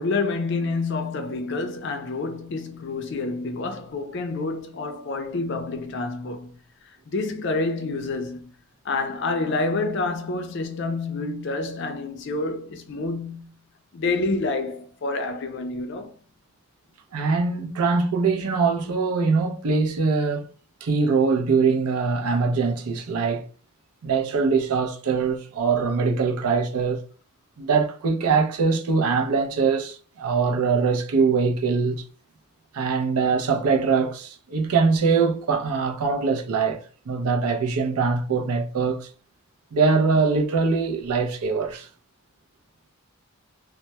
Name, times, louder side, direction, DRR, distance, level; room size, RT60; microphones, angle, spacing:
voice 1, 0.0-6.5 7.1-8.5 8.8-13.5 13.9-16.1, left 3 dB, 50° left, 0.4 m, -28 dB
voice 2, 17.1-20.5 20.8-23.5 24.0-27.0 27.6-32.0 32.7-39.1 39.7-41.9, right 4 dB, 85° right, 0.5 m, -22 dB
2.1 x 2.1 x 2.8 m
head